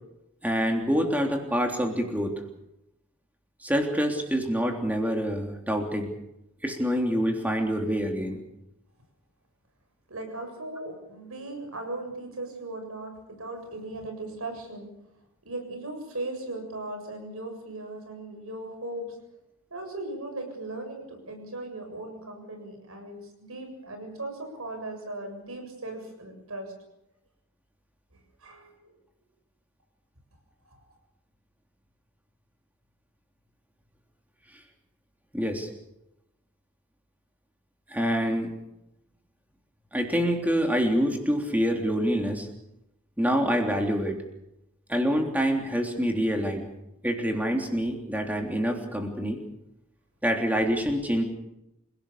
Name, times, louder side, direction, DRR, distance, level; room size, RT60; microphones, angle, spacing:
voice 1, 0.4-2.3 3.6-6.1 6.6-8.4 35.3-35.7 37.9-38.5 39.9-42.5 43.2-44.2 44.9-46.7 47.0-49.4 50.2-51.2, equal, 5° right, 2 dB, 3.4 m, -26 dB
voice 2, 10.1-14.9 15.5-19.1 19.7-26.7 28.4-28.7 30.6-30.8, right 2 dB, 75° right, 4 dB, 7.3 m, -38 dB
28.5 x 17.5 x 6.8 m, 0.88 s
head